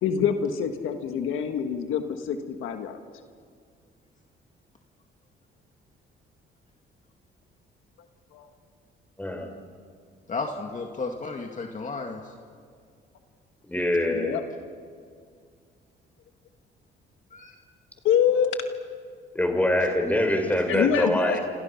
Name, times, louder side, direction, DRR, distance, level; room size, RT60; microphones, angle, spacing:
voice 1, 0.0-3.0 8.3-8.5 14.1-14.4 18.0-18.7 20.7-21.4, left 8 dB, 85° left, 6 dB, 1.6 m, -25 dB
voice 2, 9.2-9.5 13.7-14.4 19.3-21.4, left 1 dB, 10° left, 4 dB, 4.7 m, -24 dB
voice 3, 10.3-12.2 17.3-17.5, left 3 dB, 40° left, 2 dB, 2.2 m, -33 dB
29.0 x 26.0 x 5.8 m, 2.1 s
cardioid pair, 90°, 20 cm